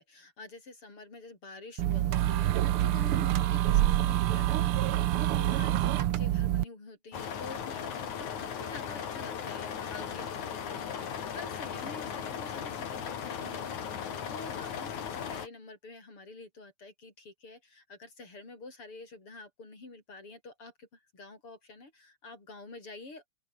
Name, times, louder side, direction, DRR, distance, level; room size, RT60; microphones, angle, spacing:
voice 1, 0.0-23.3, left 3 dB, 45° left, 7.5 m, -48 dB
sound 1, 1.8-6.6, right 13 dB, 65° right, 1.4 m, -26 dB
sound 2, 7.1-15.5, left 8 dB, 80° left, 3.9 m, -37 dB
open air
omnidirectional pair, 3.3 m